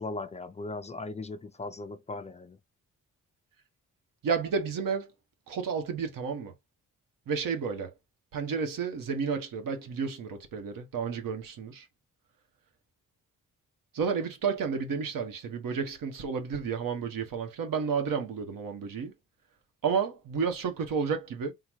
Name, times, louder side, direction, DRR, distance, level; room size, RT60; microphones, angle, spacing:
voice 1, 0.0-2.6, left 3 dB, 20° left, 0.4 m, -38 dB
voice 2, 4.2-5.1 5.5-6.5 7.3-7.9 8.3-11.9 13.9-19.1 19.8-21.5, right 5 dB, 85° right, 1.2 m, -31 dB
3.9 x 2.4 x 4.5 m
wide cardioid pair, 150°, 32 cm